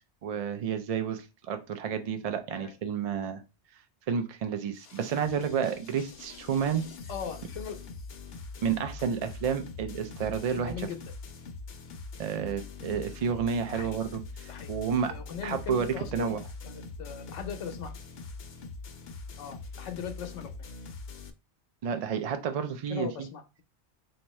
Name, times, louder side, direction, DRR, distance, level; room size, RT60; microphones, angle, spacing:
voice 1, 0.2-3.4 4.1-6.8 8.6-10.9 12.2-15.1 15.4-16.4 21.8-23.3, right 7 dB, 70° right, 7 dB, 0.3 m, -30 dB
sound 1, 4.7-21.3, left 3 dB, 65° left, 0.7 m, -43 dB
voice 2, 7.1-7.8 10.6-11.0 13.7-14.0 14.5-16.4 16.6-17.9 19.4-20.7 22.9-23.6, left 7 dB, 85° left, 7 dB, 1.0 m, -39 dB
3.5 x 2.9 x 3.0 m, 0.29 s
omnidirectional pair, 1.2 m